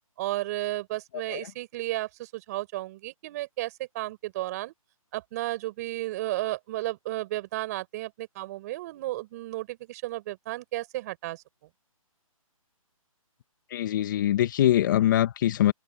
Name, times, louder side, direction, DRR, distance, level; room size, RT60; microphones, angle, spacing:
voice 1, 0.2-4.7 5.1-11.4, right 17 dB, 30° right, 5.7 m, -33 dB
voice 2, 13.7-15.7, left 12 dB, 35° left, 1.9 m, -23 dB
open air
hypercardioid pair, 155°, 18 cm